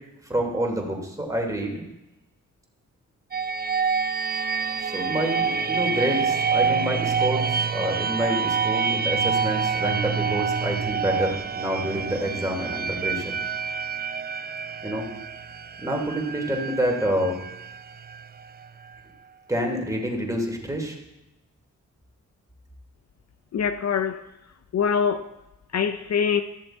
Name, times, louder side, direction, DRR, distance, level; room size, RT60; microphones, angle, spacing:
voice 1, 0.3-1.8 4.8-13.3 14.8-15.1 15.8-17.4 19.5-21.0, equal, 10° right, 3.0 m, -27 dB
sound 1, 3.3-18.9, right 6 dB, 30° right, 0.5 m, -27 dB
voice 2, 23.5-24.2 24.7-25.3 25.7-26.4, left 7 dB, 60° left, 0.6 m, -23 dB
14.0 x 6.8 x 4.4 m
cardioid pair, 65°, 31 cm